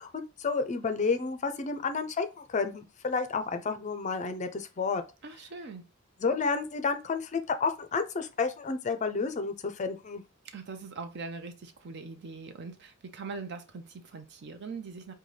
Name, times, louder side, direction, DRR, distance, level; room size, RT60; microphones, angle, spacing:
voice 1, 0.0-5.0 6.2-10.2, left 4 dB, 35° left, 0.4 m, -31 dB
voice 2, 5.2-5.8 10.4-15.1, right 4 dB, 55° right, 0.5 m, -41 dB
5.4 x 2.2 x 3.2 m
head